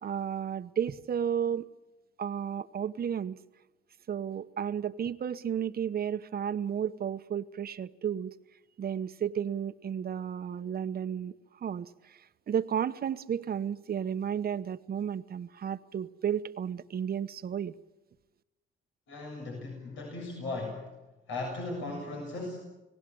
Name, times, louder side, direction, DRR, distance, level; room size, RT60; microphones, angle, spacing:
voice 1, 0.0-1.7 2.2-3.4 4.1-8.3 8.8-11.3 11.6-12.2 12.5-17.7, right 8 dB, 50° right, 11 dB, 1.1 m, -33 dB
voice 2, 19.1-20.9 21.3-22.6, left 2 dB, 80° left, 0 dB, 7.0 m, -37 dB
29.0 x 19.0 x 7.9 m, 1.1 s
cardioid pair, 90°, 20 cm